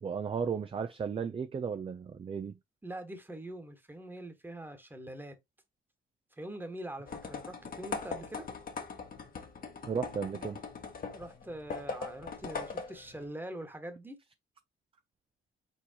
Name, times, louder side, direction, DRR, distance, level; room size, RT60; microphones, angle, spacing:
voice 1, 0.0-2.6 9.8-10.6, right 6 dB, 30° right, 0.4 m, -34 dB
voice 2, 2.8-5.4 6.4-8.5 11.1-14.2, right 1 dB, 10° right, 1.4 m, -43 dB
sound 1, 7.1-13.3, left 5 dB, 45° left, 1.3 m, -41 dB
4.5 x 4.1 x 2.8 m
cardioid pair, 90°, 20 cm